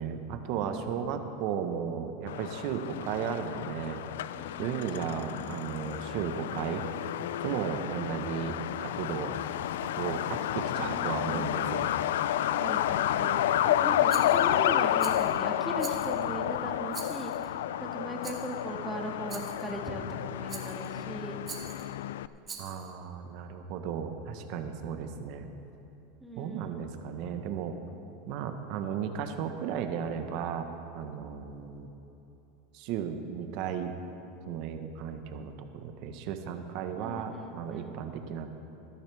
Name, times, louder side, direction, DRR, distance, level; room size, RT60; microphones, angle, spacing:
voice 1, 0.0-4.0 4.6-6.8 7.4-9.3 9.8-12.2 13.6-13.9 22.6-25.5 26.4-27.7 28.3-30.7 30.9-31.9 32.7-33.9 34.5-38.5, right 7 dB, 55° right, 6 dB, 1.2 m, -35 dB
voice 2, 0.5-1.1 4.4-4.9 10.7-11.4 12.5-21.4 26.2-26.9 37.0-38.0, right 1 dB, 5° right, 0 dB, 1.8 m, -39 dB
Truck, 2.3-22.3, left 12 dB, 85° left, 0.3 m, -30 dB
Rattle, 14.1-14.6 15.0-15.4 15.8-16.3 16.9-17.5 18.2-18.5 19.3-19.7 20.5-20.9 21.4-21.9 22.4-22.9, right 5 dB, 25° right, 2.0 m, -44 dB
18.0 x 12.5 x 3.5 m, 3.0 s
supercardioid pair, 125°, 0 cm